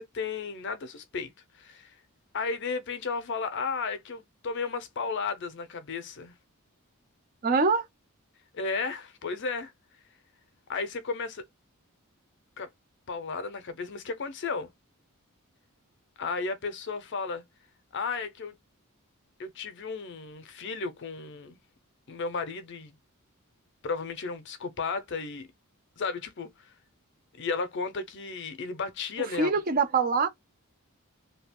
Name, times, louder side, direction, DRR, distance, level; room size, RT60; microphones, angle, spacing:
voice 1, 0.0-2.0 2.3-6.3 8.5-9.7 10.7-11.4 12.6-12.7 13.1-14.7 16.2-17.4 17.9-18.5 19.4-21.6 22.1-22.9 23.8-25.5 26.0-26.7 27.3-29.5, left 4 dB, 55° left, 0.6 m, -34 dB
voice 2, 7.4-7.8 29.4-30.3, right 4 dB, 40° right, 0.5 m, -24 dB
2.7 x 2.4 x 3.5 m
head